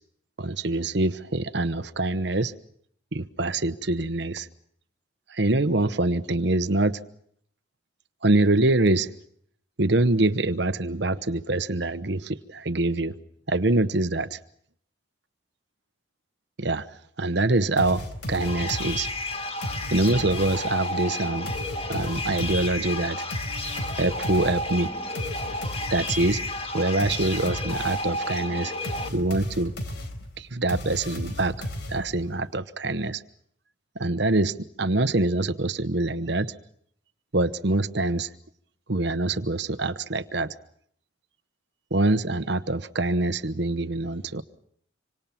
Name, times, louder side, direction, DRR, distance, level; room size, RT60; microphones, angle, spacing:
voice 1, 0.4-2.5 3.1-4.5 5.3-7.0 8.2-9.1 9.8-13.2 13.5-14.4 16.6-16.9 17.2-19.1 19.9-21.5 21.9-23.3 24.0-24.9 25.9-26.4 26.7-28.7 29.1-29.7 30.4-33.2 33.9-36.5 37.3-38.3 38.9-40.5 41.9-44.4, right 2 dB, 60° right, 1.0 m, -25 dB
sound 1, 17.8-20.8 21.5-28.2 28.8-32.3, left 1 dB, 60° left, 4.1 m, -35 dB
sound 2, 18.4-29.1, left 1 dB, 30° left, 2.0 m, -32 dB
26.5 x 25.5 x 5.9 m
head